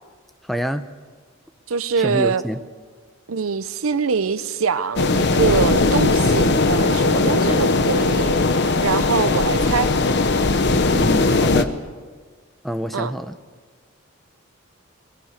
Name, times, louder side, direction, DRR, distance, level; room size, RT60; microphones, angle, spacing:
voice 1, 0.4-0.8 2.0-2.6 10.9-11.7 12.6-13.4, equal, ahead, 0.7 m, -26 dB
voice 2, 1.7-2.4 3.3-9.9 12.9-13.1, right 5 dB, 90° right, 0.7 m, -23 dB
sound 1, 5.0-11.6, left 3 dB, 55° left, 0.9 m, -18 dB
20.5 x 20.5 x 6.7 m
head